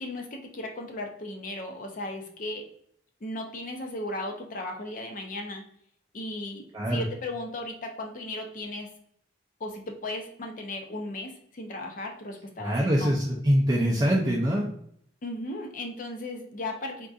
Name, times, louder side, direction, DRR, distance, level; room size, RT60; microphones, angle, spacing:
voice 1, 0.0-2.6 3.2-5.6 6.1-8.9 9.6-13.1 15.2-17.1, left 2 dB, 45° left, 3 dB, 0.5 m, -36 dB
voice 2, 12.6-14.7, equal, 20° right, -4 dB, 0.4 m, -24 dB
3.6 x 2.6 x 2.3 m, 0.66 s
head